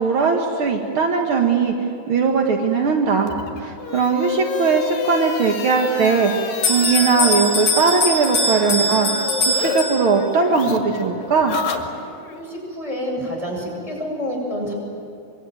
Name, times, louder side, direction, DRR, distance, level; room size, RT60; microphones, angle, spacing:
voice 1, 0.0-1.7 2.1-6.3 6.7-9.1 9.4-11.6, right 5 dB, 60° right, 2 dB, 1.3 m, -19 dB
sound 1, 3.2-9.8 10.1-12.4, left 6 dB, 60° left, 3.7 m, -30 dB
Bell, 6.6-10.4, left 1 dB, 35° left, 8.3 m, -22 dB
voice 2, 12.4-14.7, equal, 5° right, -2 dB, 7.8 m, -28 dB
24.5 x 24.5 x 9.3 m, 2.5 s
omnidirectional pair, 4.8 m